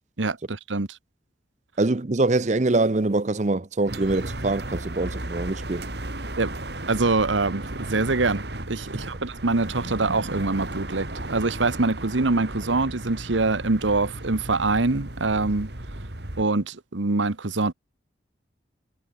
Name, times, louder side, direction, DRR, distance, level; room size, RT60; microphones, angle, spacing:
voice 1, 0.2-0.9 6.4-6.5 6.9-15.7 16.4-17.7, right 3 dB, 85° right, 1.3 m, -24 dB
voice 2, 1.8-5.9, right 2 dB, 40° right, 0.7 m, -24 dB
sound 1, 3.9-16.4, right 1 dB, 60° right, 2.9 m, -35 dB
head